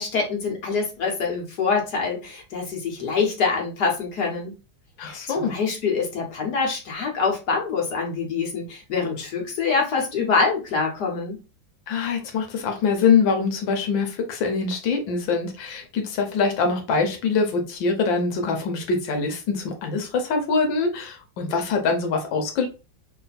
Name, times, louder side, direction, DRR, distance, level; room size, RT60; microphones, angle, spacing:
voice 1, 0.0-4.5 5.0-11.4, left 4 dB, 60° left, 1.7 m, -25 dB
voice 2, 5.0-5.6 11.9-22.7, left 4 dB, 85° left, 1.6 m, -24 dB
3.8 x 2.3 x 4.1 m
omnidirectional pair, 2.0 m